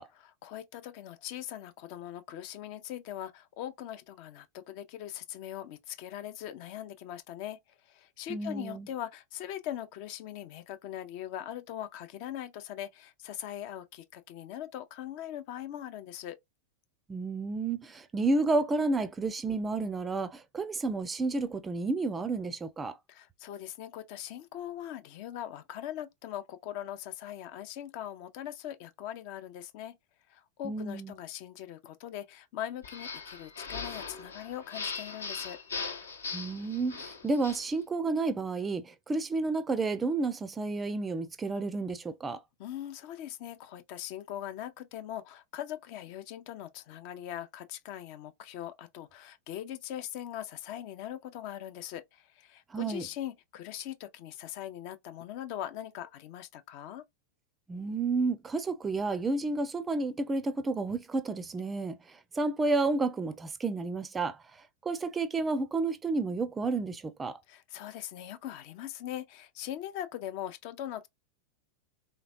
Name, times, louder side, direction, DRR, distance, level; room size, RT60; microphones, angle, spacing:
voice 1, 0.1-16.4 23.1-30.0 30.3-35.6 42.6-57.0 67.5-71.1, left 11 dB, 45° left, 0.5 m, -41 dB
voice 2, 8.3-8.9 17.1-23.0 30.6-31.1 36.3-42.4 52.7-53.1 57.7-62.0 62.3-64.4 64.8-67.4, right 3 dB, 15° right, 0.4 m, -31 dB
sound 1, 32.8-37.7, left 4 dB, 70° left, 0.9 m, -40 dB
3.3 x 3.0 x 2.5 m
figure-of-eight pair, 90°, 0 cm